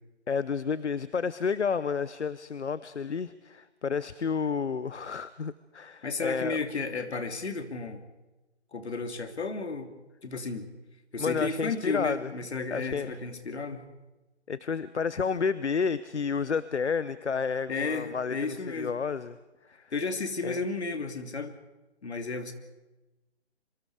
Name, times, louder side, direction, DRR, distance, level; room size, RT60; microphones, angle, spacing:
voice 1, 0.3-6.6 11.2-12.3 12.7-13.2 14.5-19.4 19.6-19.9 20.4-20.6, left 5 dB, 90° left, 16 dB, 0.9 m, -31 dB
voice 2, 6.0-8.0 8.7-9.9 10.2-10.7 11.1-13.8 17.7-18.9 19.9-21.5 22.0-22.5, left 4 dB, 75° left, 7 dB, 3.1 m, -33 dB
26.0 x 24.5 x 4.9 m, 1.1 s
figure-of-eight pair, 145°, 34 cm